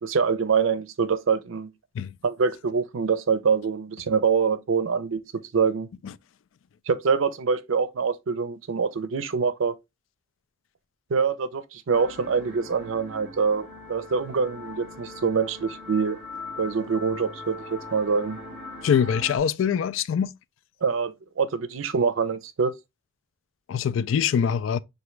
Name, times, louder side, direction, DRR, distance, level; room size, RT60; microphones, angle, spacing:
voice 1, 0.0-1.7 2.2-5.2 5.5-5.9 6.9-9.7 11.1-16.2 16.6-18.4 20.8-22.7, right 5 dB, 80° right, 0.5 m, -25 dB
sound 1, 11.9-19.4, left 2 dB, 5° right, 3.0 m, -41 dB
voice 2, 18.8-20.3 23.7-24.8, left 7 dB, 75° left, 0.3 m, -23 dB
5.8 x 2.6 x 3.1 m
head